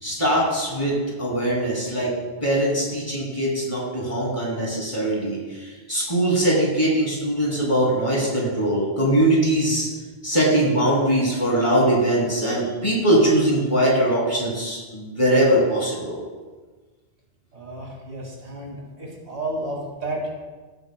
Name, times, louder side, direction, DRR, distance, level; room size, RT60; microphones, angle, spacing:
voice 1, 0.0-2.1 2.4-9.9 10.2-16.2, right 1 dB, 30° left, -5 dB, 2.8 m, -21 dB
voice 2, 17.5-20.3, right 2 dB, 75° right, -2 dB, 2.5 m, -32 dB
16.0 x 8.1 x 2.3 m, 1.3 s
omnidirectional pair, 1.1 m